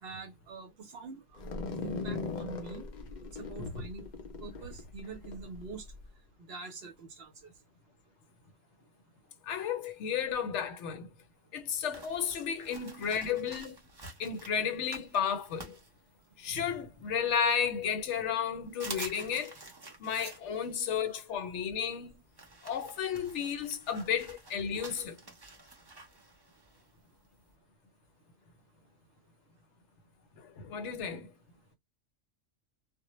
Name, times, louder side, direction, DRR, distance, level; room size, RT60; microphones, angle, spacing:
voice 1, 0.0-1.4 1.8-2.9 3.3-4.1 4.4-5.9 6.5-7.5, right 4 dB, 60° right, 0.7 m, -45 dB
sound 1, 1.4-6.0, left 3 dB, 50° left, 0.5 m, -39 dB
voice 2, 9.4-11.1 11.5-13.8 14.2-15.8 16.4-19.6 20.0-22.2 22.6-25.2 30.4-31.3, left 7 dB, 70° left, 0.9 m, -33 dB
sound 2, 11.9-16.6 17.0-18.0 18.3-18.4 18.7-27.5, right 2 dB, 30° right, 0.4 m, -49 dB
2.1 x 2.1 x 2.9 m
omnidirectional pair, 1.3 m